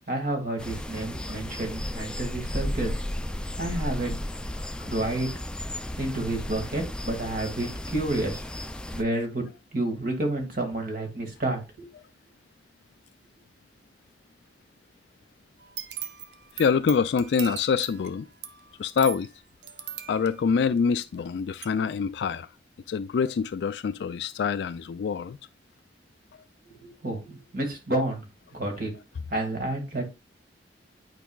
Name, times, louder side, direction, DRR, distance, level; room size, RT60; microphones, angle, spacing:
voice 1, 0.1-2.9 3.6-4.2 4.8-5.3 6.0-8.4 8.9-11.9 26.8-28.2 28.5-28.9 29.3-30.1, right 2 dB, 55° right, 2.1 m, -30 dB
sound 1, 0.6-9.0, left 1 dB, 5° left, 0.4 m, -34 dB
sound 2, 15.6-21.3 21.6-21.7, right 9 dB, 75° right, 0.7 m, -40 dB
voice 2, 16.6-18.3 18.8-19.3 20.1-22.5 22.9-25.4, left 6 dB, 70° left, 0.3 m, -25 dB
9.1 x 4.8 x 2.3 m
head